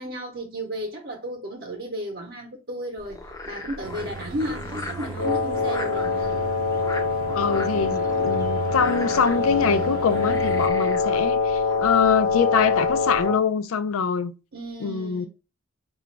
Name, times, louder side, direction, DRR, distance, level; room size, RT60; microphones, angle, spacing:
voice 1, 0.0-6.2 14.5-15.3, equal, 55° right, 0.7 m, -33 dB
Frog, 3.0-13.3, left 2 dB, 15° left, 0.5 m, -39 dB
sound 1, 3.8-10.7, right 4 dB, 85° right, 0.5 m, -35 dB
Wind instrument woodwind instrument, 5.1-13.5, left 4 dB, 50° left, 0.7 m, -24 dB
voice 2, 7.3-14.3 14.8-15.3, left 6 dB, 85° left, 0.4 m, -24 dB
4.9 x 2.4 x 3.2 m
head